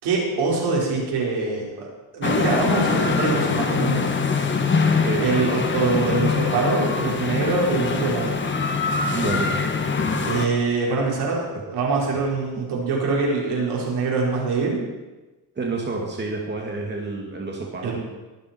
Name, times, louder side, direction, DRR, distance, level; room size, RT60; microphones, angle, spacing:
voice 1, 0.0-1.9 2.1-4.1 5.2-8.3 10.3-14.8 17.8-18.0, right 3 dB, 90° right, -3 dB, 5.1 m, -24 dB
Pedestrians and cars pass through narrow doorway, 2.2-10.5, left 4 dB, 30° left, 1.7 m, -23 dB
voice 2, 9.1-9.5 10.0-10.3 15.6-18.0, right 3 dB, 25° right, -1 dB, 2.4 m, -29 dB
23.0 x 9.9 x 4.6 m, 1.1 s
cardioid pair, 120°, 39 cm